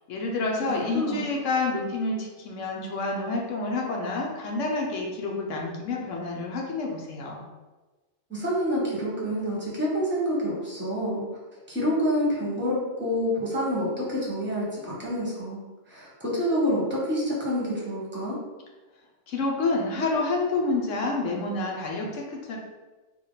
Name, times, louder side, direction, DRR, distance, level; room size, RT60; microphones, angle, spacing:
voice 1, 0.1-7.4 19.3-22.6, left 3 dB, 65° left, -1 dB, 0.9 m, -28 dB
voice 2, 0.7-1.3 8.3-11.3 11.7-18.4, equal, 10° right, -6 dB, 0.9 m, -28 dB
3.6 x 2.3 x 3.9 m, 1.2 s
omnidirectional pair, 1.5 m